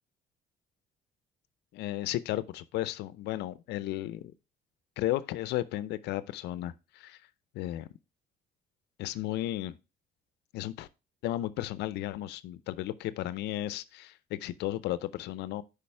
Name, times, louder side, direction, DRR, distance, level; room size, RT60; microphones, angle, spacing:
voice 1, 1.7-4.3 5.0-7.2 7.5-7.9 9.0-9.7 10.5-10.9 11.2-15.6, left 14 dB, 80° left, 0.6 m, -34 dB
8.5 x 5.1 x 3.3 m
cardioid pair, 110°, 17 cm